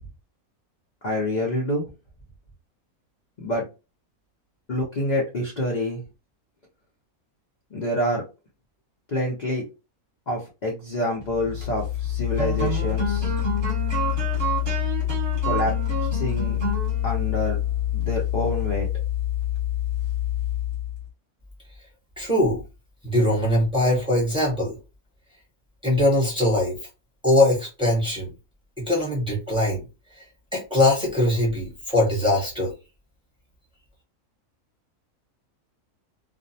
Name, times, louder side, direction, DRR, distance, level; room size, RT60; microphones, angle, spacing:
voice 1, 1.0-1.8 3.4-3.6 4.7-6.0 7.7-8.2 9.1-9.6 10.3-13.3 15.4-15.8 16.1-16.6 17.0-17.6 17.9-18.9, left 1 dB, 55° left, -2 dB, 0.5 m, -27 dB
sound 1, 11.4-21.0, left 7 dB, 40° right, 1.2 m, -25 dB
voice 2, 22.2-22.6 23.0-24.8 25.8-26.8 27.2-28.3 28.8-29.8 30.2-30.3 30.5-32.7, left 1 dB, 5° right, -5 dB, 0.8 m, -21 dB
2.5 x 2.0 x 2.6 m, 0.28 s
omnidirectional pair, 1.6 m